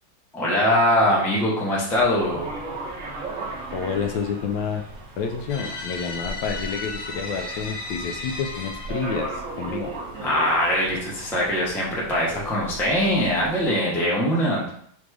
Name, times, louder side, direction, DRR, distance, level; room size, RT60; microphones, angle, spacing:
voice 1, 0.3-2.5 10.2-14.6, left 1 dB, ahead, -5 dB, 0.4 m, -22 dB
sound 1, 1.9-13.6, right 3 dB, 55° right, 0.9 m, -36 dB
voice 2, 3.7-4.8 5.2-9.9, left 6 dB, 75° left, 5 dB, 1.2 m, -29 dB
sound 2, 5.5-9.2, left 3 dB, 60° left, 1.0 m, -35 dB
3.9 x 2.4 x 4.6 m, 0.66 s
omnidirectional pair, 2.1 m